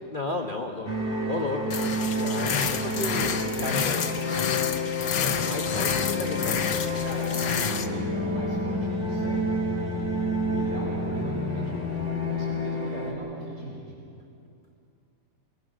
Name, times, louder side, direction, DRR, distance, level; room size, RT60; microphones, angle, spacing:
voice 1, 0.1-1.8 2.2-4.3 5.2-7.1, left 3 dB, 30° left, 1 dB, 1.1 m, -34 dB
sound 1, 0.9-13.1, left 1 dB, 5° left, 3.4 m, -29 dB
sound 2, 1.7-7.9, left 7 dB, 65° left, 1.6 m, -29 dB
voice 2, 6.8-13.8, equal, 65° right, -3 dB, 5.9 m, -40 dB
28.5 x 21.0 x 6.2 m, 2.6 s
omnidirectional pair, 2.1 m